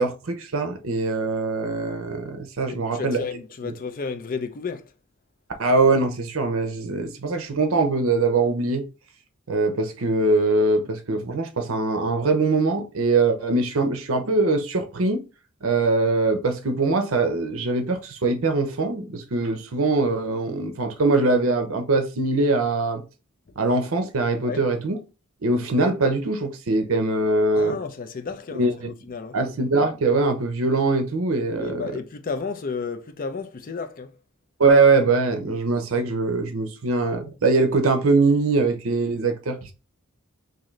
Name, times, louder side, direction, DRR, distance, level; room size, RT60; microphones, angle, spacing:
voice 1, 0.0-3.2 3.6-3.7 5.6-8.9 9.5-15.2 15.6-23.0 23.6-25.0 25.4-27.8 28.5-28.9 29.3-31.9 34.6-39.7, right 3 dB, 70° right, 0.7 m, -22 dB
voice 2, 2.6-4.9 24.4-24.6 27.5-29.4 31.6-34.1, left 5 dB, 40° left, 0.4 m, -32 dB
3.7 x 2.6 x 3.1 m
head